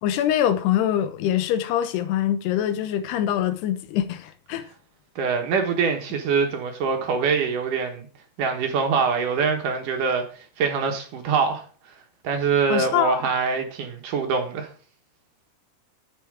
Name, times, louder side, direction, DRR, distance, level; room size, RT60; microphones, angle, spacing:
voice 1, 0.0-4.7 12.7-13.3, left 11 dB, 85° left, 3.1 m, -24 dB
voice 2, 5.2-8.1 8.4-11.6 12.2-14.7, right 5 dB, 65° right, 2.6 m, -24 dB
10.5 x 7.4 x 4.8 m
omnidirectional pair, 4.6 m